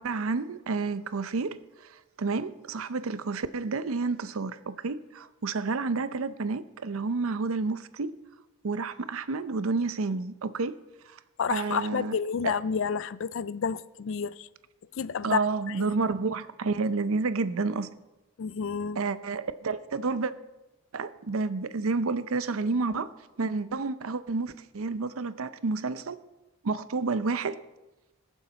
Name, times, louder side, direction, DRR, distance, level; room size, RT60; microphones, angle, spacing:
voice 1, 0.0-1.6 2.2-8.1 8.6-10.8 11.1-11.2 11.5-12.1 12.4-12.5 15.2-17.9 19.0-20.3 20.9-23.1 23.4-26.2 26.6-27.6, right 4 dB, 80° right, 0.6 m, -30 dB
voice 2, 11.4-14.5 15.0-15.4 15.7-15.9 18.4-19.0, left 6 dB, 65° left, 0.4 m, -30 dB
21.5 x 7.2 x 4.0 m
head